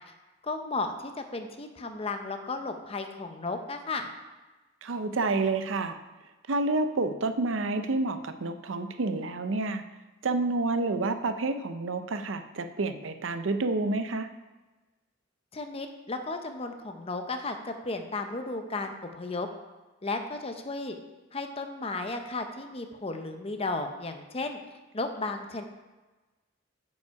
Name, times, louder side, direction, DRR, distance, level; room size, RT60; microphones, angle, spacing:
voice 1, 0.4-4.1 15.5-19.5 20.0-21.0 21.3-24.6 24.9-25.6, left 3 dB, 30° left, 6 dB, 0.7 m, -34 dB
voice 2, 4.8-6.0 6.5-9.8 10.2-14.3, right 3 dB, 85° right, 9 dB, 0.6 m, -29 dB
9.5 x 5.4 x 4.7 m, 1.2 s
head